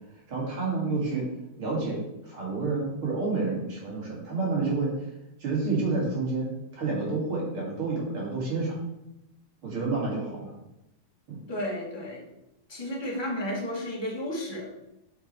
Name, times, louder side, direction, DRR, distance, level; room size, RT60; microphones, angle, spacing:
voice 1, 0.3-1.2 1.6-4.9 5.4-8.8 9.6-10.5 11.3-11.4, right 3 dB, 45° right, -4 dB, 3.5 m, -29 dB
voice 2, 11.5-12.2 12.7-14.7, left 1 dB, 10° left, -3 dB, 1.8 m, -32 dB
8.0 x 6.3 x 4.6 m, 0.89 s
omnidirectional pair, 3.5 m